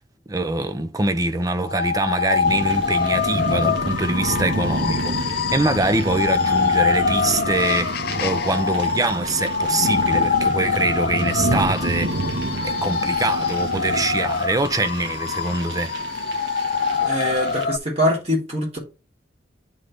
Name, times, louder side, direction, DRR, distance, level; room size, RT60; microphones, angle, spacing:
voice 1, 0.3-12.1 12.6-15.9, right 2 dB, 20° right, 0.6 m, -24 dB
sound 1, 1.7-17.8, left 5 dB, 55° left, 0.5 m, -24 dB
sound 2, 2.4-17.7, right 2 dB, 75° right, 1.3 m, -29 dB
voice 2, 17.0-18.8, equal, 35° right, 3.5 m, -23 dB
11.0 x 4.0 x 3.3 m
head